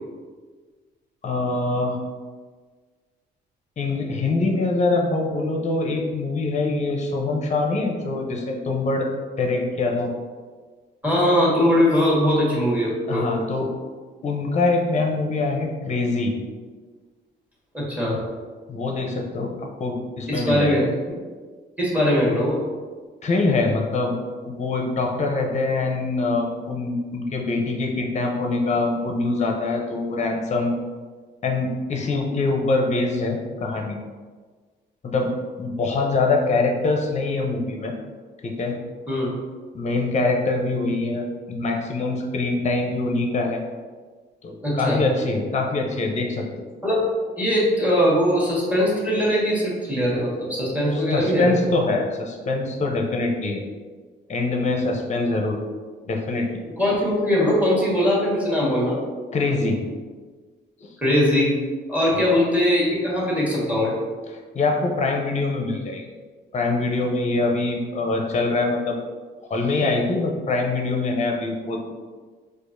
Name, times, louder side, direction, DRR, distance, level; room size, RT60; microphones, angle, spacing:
voice 1, 1.2-2.0 3.8-10.1 13.1-13.7 14.2-16.3 18.7-20.8 23.2-24.2 24.4-30.7 31.4-34.0 35.0-35.3 35.6-37.9 38.4-38.7 39.7-43.6 44.4-46.4 50.9-53.6 54.3-55.6 56.1-56.5 59.3-59.8 60.8-60.9 62.1-62.2 64.3-66.0 66.5-69.0 69.5-71.8, left 3 dB, 35° left, 2 dB, 0.6 m, -24 dB
voice 2, 11.0-13.3 17.7-18.2 20.3-20.9 21.8-22.6 39.1-39.3 44.6-45.0 46.8-47.0 47.4-51.5 56.8-59.0 61.0-61.5 61.9-64.0, equal, 10° right, -6 dB, 1.5 m, -21 dB
4.5 x 2.5 x 2.6 m, 1.5 s
cardioid pair, 90°, 20 cm